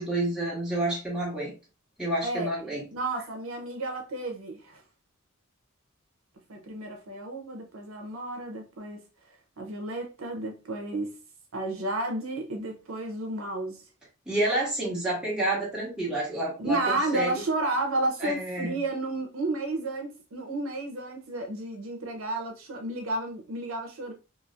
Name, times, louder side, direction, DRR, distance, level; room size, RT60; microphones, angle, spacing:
voice 1, 0.0-1.5 2.0-2.8 14.3-17.4 18.2-18.8, right 1 dB, 5° right, 1.3 m, -29 dB
voice 2, 2.9-4.8 6.5-11.2 11.5-13.8 16.6-24.1, right 2 dB, 75° right, 0.7 m, -32 dB
3.1 x 2.8 x 2.4 m
head